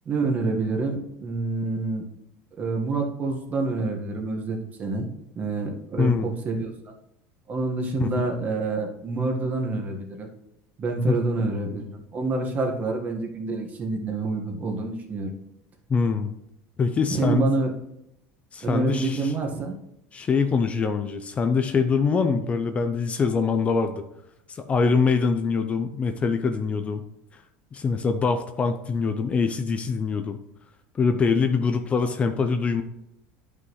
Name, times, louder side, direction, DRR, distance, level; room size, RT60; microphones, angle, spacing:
voice 1, 0.0-2.0 2.6-5.1 5.3-6.7 7.5-10.3 10.8-15.3 17.1-17.7 18.6-19.7 22.2-22.5, right 3 dB, 35° right, 2 dB, 1.5 m, -27 dB
voice 2, 6.0-6.3 8.0-8.2 11.1-11.2 15.9-16.3 16.8-17.5 18.5-19.3 20.1-24.0 24.5-27.0 27.7-30.4 30.9-32.8, left 5 dB, 25° left, 8 dB, 0.6 m, -24 dB
10.0 x 5.7 x 3.2 m, 0.82 s
supercardioid pair, 125°, 5 cm